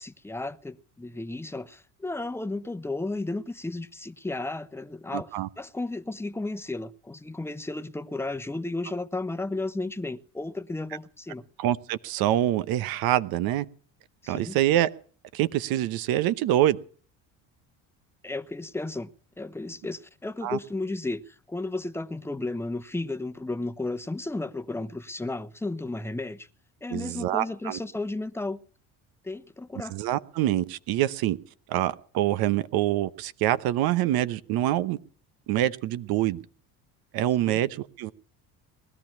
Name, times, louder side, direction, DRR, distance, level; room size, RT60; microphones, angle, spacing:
voice 1, 0.0-5.3 5.6-11.4 14.2-14.6 18.2-19.1 19.4-26.5 26.8-28.6 29.2-30.0 37.4-37.6, left 2 dB, 5° left, 1.0 m, -33 dB
voice 2, 5.1-5.5 11.6-13.6 14.3-14.9 15.3-16.8 20.4-20.6 26.9-27.8 29.9-31.4 31.7-35.0 35.5-36.4 37.1-38.1, right 13 dB, 70° right, 1.0 m, -25 dB
20.0 x 12.0 x 5.9 m
supercardioid pair, 90°, 37 cm